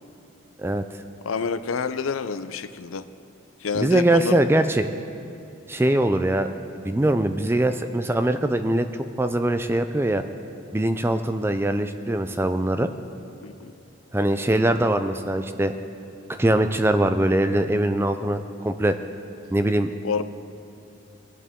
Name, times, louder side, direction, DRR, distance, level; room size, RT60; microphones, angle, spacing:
voice 1, 1.2-3.0 3.6-4.4 13.4-13.7 20.0-20.2, left 5 dB, 85° left, 12 dB, 0.5 m, -28 dB
voice 2, 3.8-4.9 5.7-6.5 6.8-8.9 9.2-10.2 10.7-12.9 14.1-15.7 16.4-19.0 19.5-19.9, right 1 dB, 10° right, 9 dB, 0.4 m, -22 dB
23.0 x 8.3 x 3.6 m, 2.7 s
head